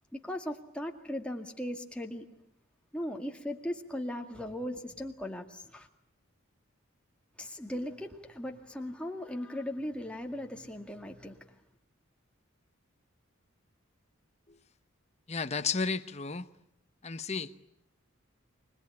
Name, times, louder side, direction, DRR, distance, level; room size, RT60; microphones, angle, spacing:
voice 1, 0.1-2.3 2.9-5.9 7.4-11.5, left 1 dB, 5° left, 2.1 m, -38 dB
voice 2, 15.3-16.5 17.0-17.5, left 5 dB, 35° left, 0.9 m, -33 dB
25.0 x 20.5 x 9.9 m
head